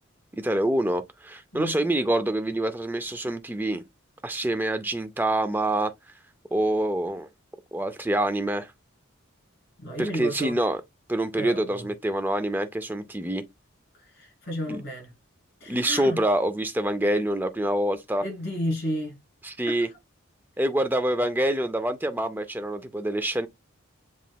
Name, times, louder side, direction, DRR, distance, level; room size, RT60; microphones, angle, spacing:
voice 1, 0.3-3.8 4.2-5.9 6.5-7.3 7.7-8.7 10.0-10.8 11.1-13.5 14.7-14.8 15.7-18.2 19.4-19.9 20.6-23.5, right 1 dB, 10° right, 0.4 m, -26 dB
voice 2, 9.8-10.5 11.4-11.9 14.0-15.1 15.6-16.2 18.2-19.2 19.7-19.9, equal, 50° left, 3.2 m, -32 dB
7.3 x 3.1 x 2.3 m
head